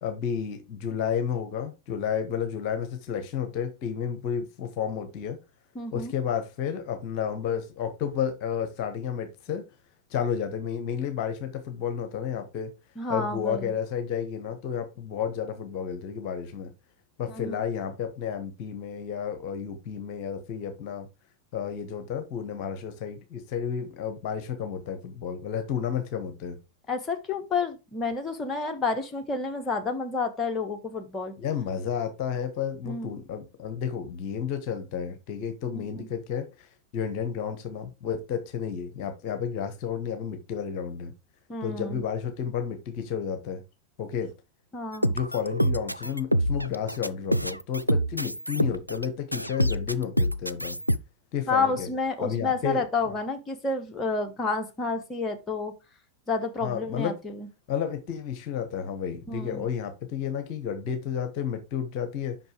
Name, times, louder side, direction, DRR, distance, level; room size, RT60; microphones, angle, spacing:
voice 1, 0.0-5.4 5.9-9.6 10.1-12.7 13.1-16.7 17.2-21.1 21.5-26.6 31.4-41.1 41.6-43.6 44.0-44.3 45.1-50.8 51.3-51.9 52.2-53.1 56.6-57.2 57.7-62.4, left 8 dB, 45° left, 1.1 m, -31 dB
voice 2, 5.7-6.1 13.0-13.7 17.3-17.5 26.9-31.3 32.8-33.1 35.7-36.1 41.5-42.0 44.7-45.2 51.5-55.7 56.3-57.3 59.3-59.7, left 3 dB, 20° left, 1.3 m, -30 dB
sound 1, 44.9-49.0 49.3-51.0, equal, 90° left, 0.3 m, -26 dB
5.6 x 5.3 x 4.9 m
figure-of-eight pair, 90°, 0 cm